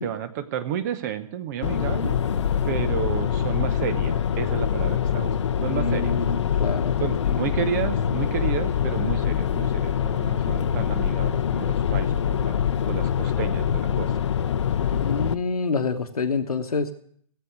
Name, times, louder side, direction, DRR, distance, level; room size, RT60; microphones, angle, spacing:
voice 1, 0.0-2.1 2.7-5.3 5.6-6.2 7.0-12.6 12.9-14.2, right 9 dB, 30° right, 12 dB, 0.9 m, -31 dB
sound 1, 1.6-15.3, left 8 dB, 50° left, 0.8 m, -24 dB
voice 2, 5.6-6.9 7.3-7.4 14.8-16.9, left 4 dB, 75° left, 6 dB, 1.3 m, -27 dB
17.5 x 8.1 x 9.3 m, 0.63 s
figure-of-eight pair, 130°, 19 cm